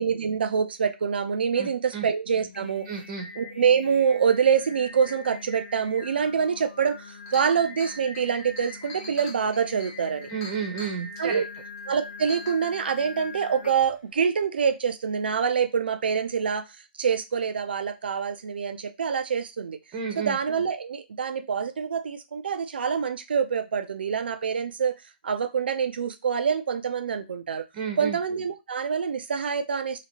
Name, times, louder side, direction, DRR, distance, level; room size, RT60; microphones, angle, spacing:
voice 1, 0.0-2.9 3.4-10.3 11.2-11.5 11.9-16.7 17.0-19.8 20.2-24.9 25.2-27.6 28.0-30.0, right 6 dB, 75° right, 0.4 m, -26 dB
voice 2, 1.5-2.1 2.9-3.3 10.3-11.4 19.9-20.4 27.7-28.2, right 6 dB, 30° right, 0.7 m, -32 dB
Singing, 2.3-14.1, left 3 dB, 90° left, 0.7 m, -43 dB
Chink clink, 6.6-6.7 7.0-11.0 11.8-11.9 12.3-12.5, left 1 dB, 25° left, 1.0 m, -43 dB
2.8 x 2.8 x 2.8 m
hypercardioid pair, 145°, 6 cm